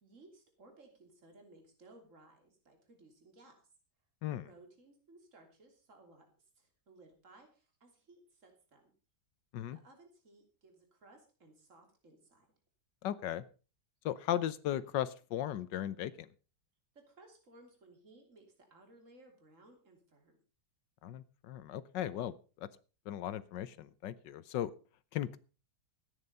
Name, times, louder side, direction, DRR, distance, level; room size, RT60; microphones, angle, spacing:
voice 1, 0.0-3.7 4.4-6.3 6.6-8.9 9.7-12.5 17.1-20.4, right 2 dB, 45° right, 3 dB, 3.5 m, -60 dB
voice 2, 13.0-13.4 14.0-16.3 21.0-22.7 23.1-24.7 25.1-25.4, left 11 dB, 90° left, 15 dB, 1.5 m, -37 dB
14.0 x 9.7 x 5.4 m, 0.35 s
omnidirectional pair, 1.9 m